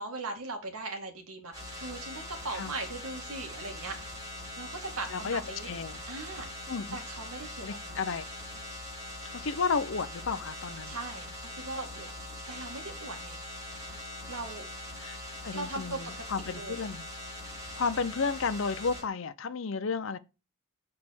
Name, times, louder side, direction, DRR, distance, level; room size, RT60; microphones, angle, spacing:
voice 1, 0.0-4.0 4.6-5.7 6.1-6.5 6.9-8.0 10.9-12.1 12.5-13.4 14.3-14.7 15.5-16.8, right 2 dB, 80° right, 2.0 m, -39 dB
sound 1, 1.5-19.0, left 1 dB, 15° right, 4.6 m, -42 dB
voice 2, 5.1-6.0 6.7-7.0 7.6-8.3 9.3-11.0 15.0-17.1 17.7-20.2, left 5 dB, 60° left, 0.6 m, -32 dB
6.7 x 4.2 x 4.3 m
head